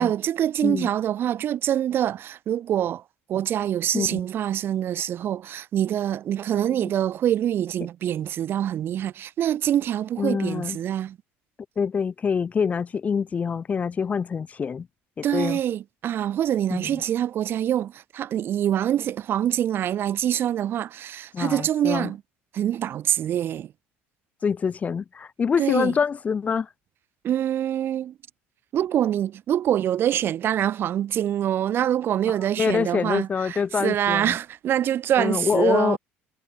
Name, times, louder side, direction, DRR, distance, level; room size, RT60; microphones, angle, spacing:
voice 1, 0.0-3.0 3.3-11.2 15.2-22.2 22.5-23.7 25.6-25.9 27.2-28.1 28.7-36.0, right 11 dB, 50° right, 0.6 m, -25 dB
voice 2, 10.2-10.8 11.8-14.9 15.2-15.6 16.7-17.0 21.3-22.1 24.4-26.7 32.3-34.4 35.2-36.0, left 6 dB, 30° left, 0.5 m, -25 dB
supercardioid pair, 90°, 5 cm